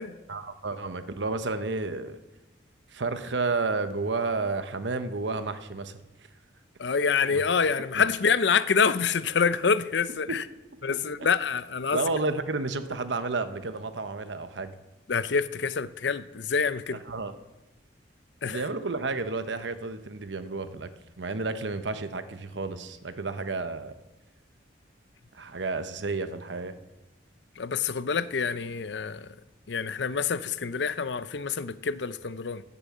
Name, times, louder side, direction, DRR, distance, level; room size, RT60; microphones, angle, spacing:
voice 1, 0.3-2.2 2.9-6.0 7.3-7.4 7.9-8.0 10.3-10.4 11.9-14.7 17.1-17.3 18.5-20.9 21.2-23.9 25.3-26.7, right 3 dB, 80° right, 1.0 m, -31 dB
voice 2, 6.8-10.4 10.8-12.0 15.1-17.0 18.4-18.7 27.6-29.3 29.7-32.6, left 5 dB, 75° left, 0.6 m, -26 dB
14.0 x 6.9 x 7.4 m
head